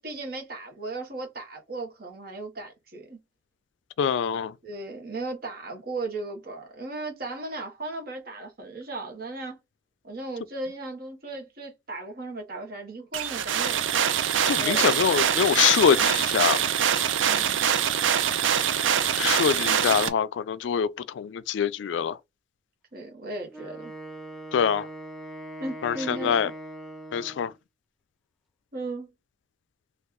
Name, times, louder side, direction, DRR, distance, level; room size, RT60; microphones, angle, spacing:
voice 1, 0.0-3.2 4.6-9.6 10.0-14.0 14.6-14.9 17.3-17.7 19.2-19.4 22.9-23.9 25.6-26.5 28.7-29.1, right 2 dB, 50° right, 1.1 m, -36 dB
voice 2, 4.0-4.5 14.4-16.7 19.2-22.2 24.5-24.9 25.8-26.5 27.1-27.5, left 7 dB, 75° left, 0.3 m, -24 dB
sound 1, 13.1-20.1, right 8 dB, 85° right, 0.4 m, -24 dB
Wind instrument woodwind instrument, 23.5-27.5, right 1 dB, ahead, 0.9 m, -41 dB
3.1 x 2.4 x 3.5 m
head